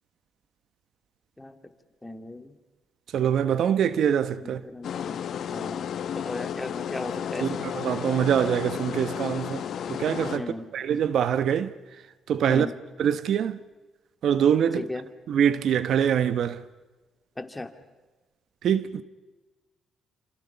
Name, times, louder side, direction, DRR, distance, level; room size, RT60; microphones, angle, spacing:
voice 1, 2.0-2.6 4.4-5.2 5.5-7.7 10.3-10.7 12.5-12.7 14.7-15.1 17.4-17.7, left 2 dB, 15° left, 2.3 m, -36 dB
voice 2, 3.1-4.7 7.4-11.7 12.3-12.7 13.0-13.6 14.2-14.9 15.3-16.7 18.6-19.0, right 8 dB, 70° right, 1.0 m, -24 dB
sound 1, 4.8-10.4, left 8 dB, 65° left, 1.5 m, -33 dB
28.5 x 27.0 x 5.7 m
cardioid pair, 90°, 0 cm